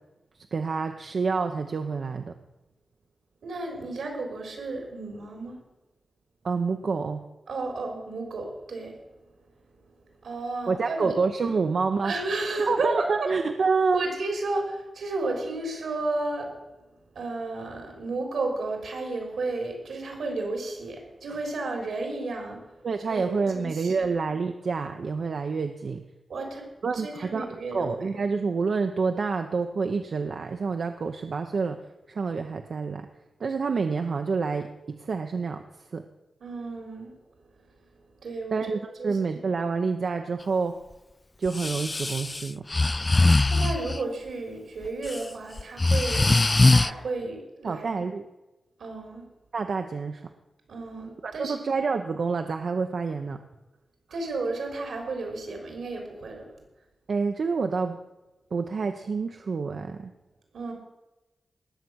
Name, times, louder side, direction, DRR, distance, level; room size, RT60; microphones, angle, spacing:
voice 1, 0.5-2.3 6.4-7.2 10.7-12.1 12.7-14.1 22.8-26.0 26.8-27.5 27.7-31.8 32.1-33.1 33.4-35.6 35.9-36.0 38.5-40.8 41.4-42.6 47.6-48.3 49.5-50.3 51.2-53.4 57.1-58.0 58.5-60.1, right 4 dB, 70° right, 5 dB, 0.8 m, -28 dB
voice 2, 3.4-5.6 7.5-9.0 10.2-11.1 12.0-13.3 13.9-16.6 17.2-22.7 23.1-24.1 26.3-26.7 26.9-27.9 36.4-37.1 38.2-38.7 39.0-39.1 43.1-46.3 46.7-48.0 48.8-49.3 50.7-51.6 54.1-56.6 60.5-60.7, right 2 dB, 90° right, 3 dB, 3.7 m, -32 dB
Breathing, 41.5-44.0 44.8-45.2 45.6-46.9, left 2 dB, 30° left, 0.3 m, -21 dB
19.0 x 7.1 x 6.3 m, 1.1 s
cardioid pair, 75°, 0 cm